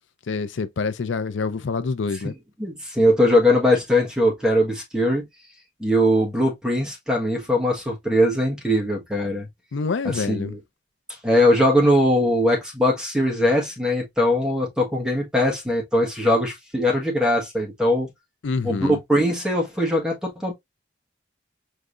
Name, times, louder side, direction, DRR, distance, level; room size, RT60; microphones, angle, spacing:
voice 1, 0.3-2.3 9.7-10.5 18.4-19.0, left 4 dB, 75° left, 0.5 m, -26 dB
voice 2, 2.6-5.2 5.8-9.5 10.0-10.6 11.2-18.1 18.6-20.5, left 1 dB, 5° right, 1.3 m, -21 dB
4.8 x 3.2 x 2.5 m
head